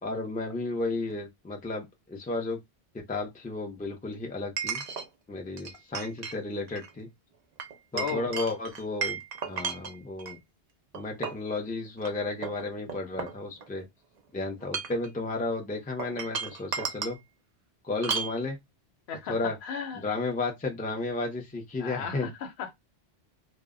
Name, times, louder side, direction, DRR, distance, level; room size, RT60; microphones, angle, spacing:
voice 1, 0.0-2.6 2.9-4.8 5.3-7.1 7.9-10.4 10.9-13.8 14.3-17.2 17.8-18.6 19.3-19.6 20.0-22.3, left 3 dB, 15° left, 0.3 m, -33 dB
Chink clink, 1.1-1.2 4.6-5.1 5.6-6.4 6.7-6.9 7.6-10.4 10.9-11.5 12.0-12.1 12.4-13.8 14.5-15.1 16.0-17.2 18.0-18.4, right 6 dB, 55° right, 0.5 m, -34 dB
voice 2, 7.9-8.5 19.1-20.1 21.8-22.7, left 7 dB, 80° left, 0.9 m, -36 dB
2.1 x 2.0 x 3.5 m
omnidirectional pair, 1.1 m